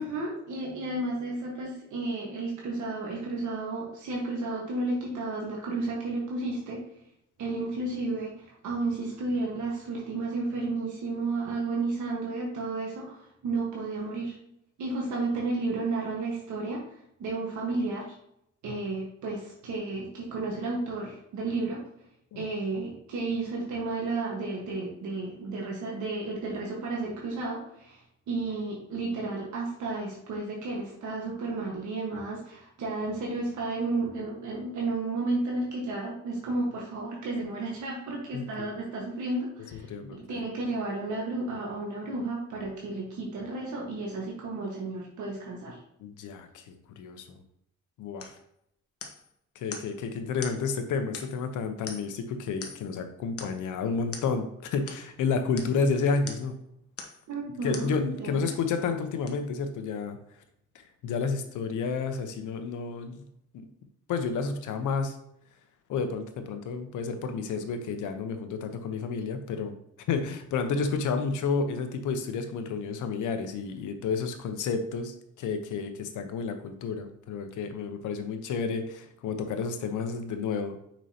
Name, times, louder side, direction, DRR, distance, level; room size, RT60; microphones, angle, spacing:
voice 1, 0.0-6.8 7.4-14.4 14.8-18.1 18.6-21.8 22.3-45.8 57.3-57.9 58.2-58.4, right 3 dB, 75° right, -2 dB, 1.5 m, -32 dB
voice 2, 38.3-38.7 39.9-40.4 46.0-47.3 48.0-48.3 49.5-56.5 57.6-60.2 60.7-63.3 63.5-63.7 64.1-65.2 65.9-69.7 70.1-80.8, left 5 dB, 80° left, 7 dB, 1.0 m, -31 dB
sound 1, 48.2-48.4 49.0-49.3 49.7-49.9 50.4-50.6 51.1-51.5 51.9-52.2 52.6-52.9 53.4-53.6 54.1-54.3 54.9-55.0 55.6-55.8 56.3-56.5 57.0-57.3 57.7-57.9 58.5-58.7 59.3-59.4, left 5 dB, 50° left, 1.2 m, -42 dB
6.0 x 5.5 x 2.9 m, 0.75 s
cardioid pair, 90°, 30 cm